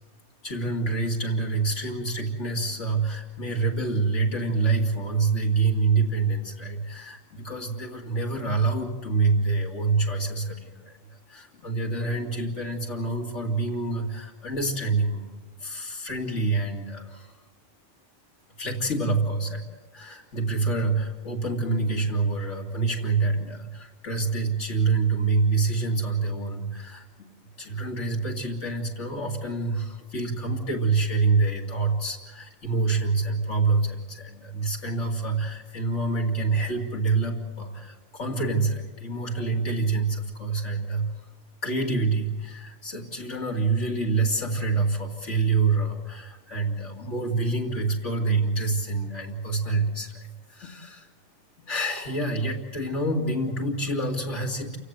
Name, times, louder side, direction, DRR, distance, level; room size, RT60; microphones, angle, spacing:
voice 1, 0.4-15.3 15.6-17.3 18.6-19.6 19.9-41.1 41.6-51.1 51.7-54.8, right 3 dB, 85° left, 0 dB, 2.9 m, -27 dB
28.5 x 17.0 x 8.2 m, 1.2 s
omnidirectional pair, 1.2 m